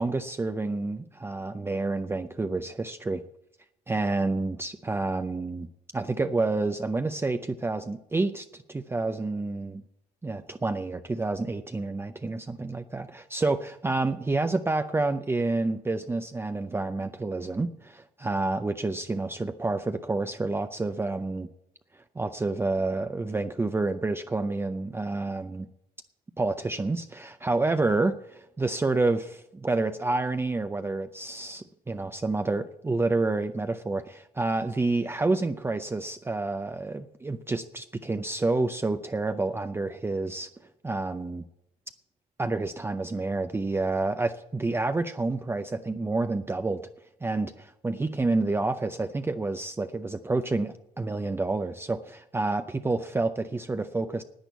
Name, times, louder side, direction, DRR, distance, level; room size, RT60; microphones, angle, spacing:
voice 1, 0.0-3.2 3.9-5.7 5.9-9.8 10.2-21.5 22.2-25.7 26.4-40.5 40.8-41.4 42.4-46.8 47.2-54.2, right 3 dB, 15° right, 8 dB, 0.5 m, -29 dB
10.0 x 8.9 x 8.1 m, 0.81 s
cardioid pair, 110°, 17 cm